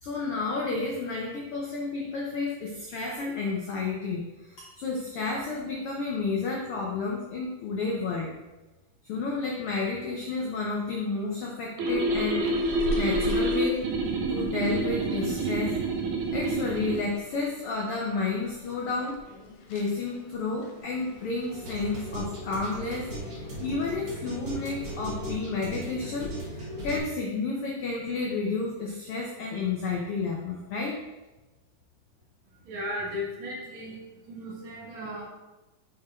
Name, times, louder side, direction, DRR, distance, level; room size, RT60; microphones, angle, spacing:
voice 1, 0.0-8.3 9.1-13.9 14.3-15.8 16.3-19.2 19.7-31.0, left 4 dB, 90° left, -1 dB, 1.2 m, -31 dB
sound 1, 11.8-25.4, left 1 dB, 70° left, 1.5 m, -43 dB
sound 2, 11.8-17.0, right 2 dB, 85° right, 1.1 m, -28 dB
sound 3, 20.8-27.0, right 1 dB, 60° right, 0.9 m, -37 dB
voice 2, 32.6-34.0 34.3-35.2, left 1 dB, 40° right, -5 dB, 1.5 m, -35 dB
6.8 x 3.8 x 4.2 m, 1.1 s
omnidirectional pair, 3.5 m